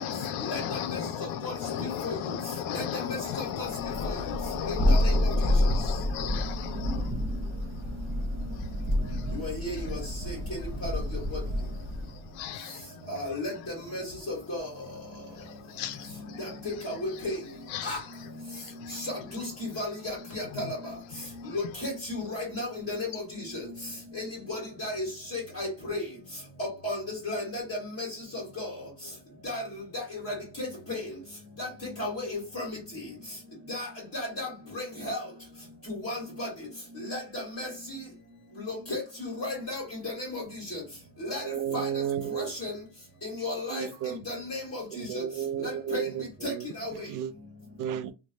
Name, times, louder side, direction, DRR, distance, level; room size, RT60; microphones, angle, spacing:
voice 1, 0.0-7.1 9.1-9.3 12.3-12.8 15.4-16.4 17.7-18.0 18.5-19.0 21.4-21.5, left 9 dB, 75° left, 0.6 m, -35 dB
voice 2, 3.1-3.7 4.9-5.2 9.3-10.0 10.8-10.9 11.3-11.4 13.1-13.5 13.9-14.0 14.3-14.7 16.6-17.3 17.8-18.0 18.9-19.0 19.3-20.7 21.5-21.9 22.3-23.2 24.1-24.2 24.5-25.0 25.3-26.0 26.6-27.0 27.2-27.6 28.0-28.1 28.3-28.7 29.4-29.6 29.9-31.0 31.6-31.7 32.0-32.7 33.7-33.9 34.1-34.5 34.7-35.2 35.9-36.5 37.1-37.7 38.7-39.0 39.4-40.4 40.7-40.8 41.2-41.4 41.7-41.8 42.3-42.7 43.4-43.9 44.3-44.8 45.1-45.2 45.6-46.0 46.4-46.5 46.8-46.9, left 2 dB, 30° left, 1.5 m, -33 dB
Thunder, 3.8-12.2, left 1 dB, 25° right, 1.3 m, -28 dB
voice 3, 41.4-42.5 43.7-44.2 44.9-46.7 47.1-47.3 47.8-48.1, right 9 dB, 45° right, 0.4 m, -32 dB
3.0 x 2.2 x 2.6 m
cardioid pair, 120°, 47 cm